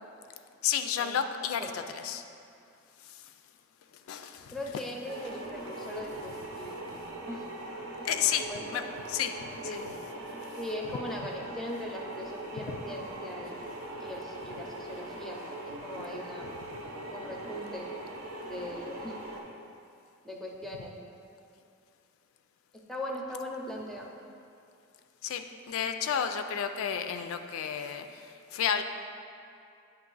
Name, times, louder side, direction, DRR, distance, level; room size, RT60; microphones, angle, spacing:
voice 1, 0.6-2.2 3.0-3.2 4.1-4.6 8.0-8.8 9.1-9.3 9.7-9.8 25.2-28.8, left 8 dB, 85° left, 8 dB, 0.3 m, -31 dB
voice 2, 4.5-7.0 7.3-7.4 8.0-8.1 8.5-8.9 9.6-9.9 10.6-13.7 14.0-15.4 15.8-16.6 17.1-17.9 18.4-19.2 19.4-19.5 20.2-21.0 22.9-24.1, left 1 dB, ahead, 0 dB, 0.5 m, -39 dB
sound 1, 5.0-19.4, right 1 dB, 80° right, 0.8 m, -41 dB
8.6 x 2.9 x 3.9 m, 2.5 s
head